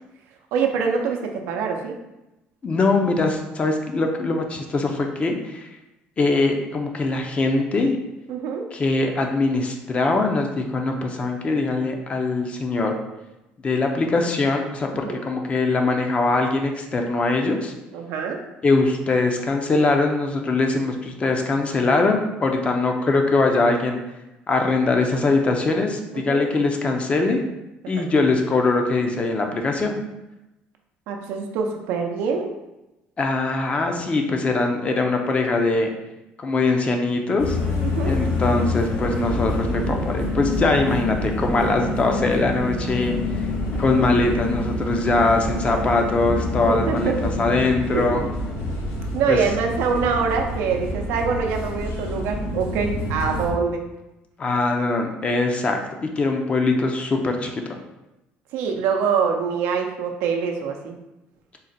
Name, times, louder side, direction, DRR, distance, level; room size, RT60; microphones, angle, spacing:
voice 1, 0.5-1.9 8.3-8.6 14.9-15.2 17.9-18.4 26.1-26.5 27.8-28.0 31.1-32.5 37.8-38.1 46.7-47.1 47.9-48.3 49.1-53.8 58.5-61.0, right 5 dB, 85° right, 3 dB, 0.5 m, -24 dB
voice 2, 2.6-5.7 6.2-8.0 8.7-12.9 13.6-17.7 18.6-24.0 24.5-27.4 27.9-30.0 33.2-35.9 36.4-37.6 38.0-43.1 43.8-48.2 49.3-49.4 54.4-57.8, left 3 dB, 30° left, 3 dB, 0.5 m, -22 dB
sound 1, 37.4-53.5, left 2 dB, 70° left, 1.1 m, -27 dB
3.8 x 2.1 x 4.0 m, 0.97 s
cardioid pair, 105°, 4 cm